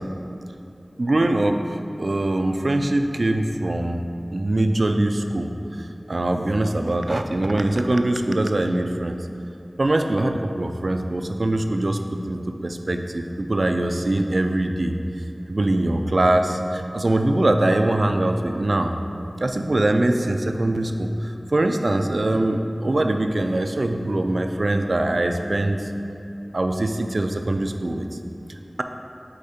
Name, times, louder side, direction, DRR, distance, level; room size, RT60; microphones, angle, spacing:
voice 1, 1.0-4.0 4.3-5.5 6.1-9.2 9.8-14.9 15.5-18.9 19.4-25.8 26.5-28.1, right 1 dB, 65° right, 5 dB, 0.3 m, -22 dB
4.9 x 4.5 x 4.2 m, 2.6 s
wide cardioid pair, 60°, 0 cm